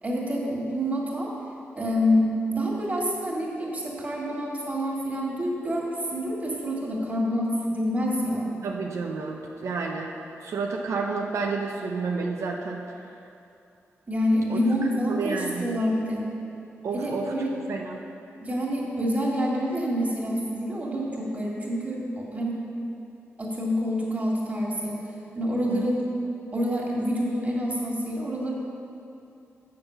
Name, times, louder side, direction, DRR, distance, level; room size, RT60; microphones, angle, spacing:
voice 1, 0.0-1.3 1.8-8.6 14.1-16.2 16.9-17.5 18.4-22.6 23.4-25.0 25.4-26.0 26.5-28.5, equal, 30° right, -4 dB, 2.2 m, -27 dB
voice 2, 8.6-10.1 10.4-13.0 14.5-14.6 15.1-15.7 16.8-17.3 17.7-18.0 25.7-25.8, right 4 dB, 85° right, 0 dB, 0.7 m, -30 dB
7.9 x 6.7 x 6.6 m, 2.7 s
wide cardioid pair, 100°, 5 cm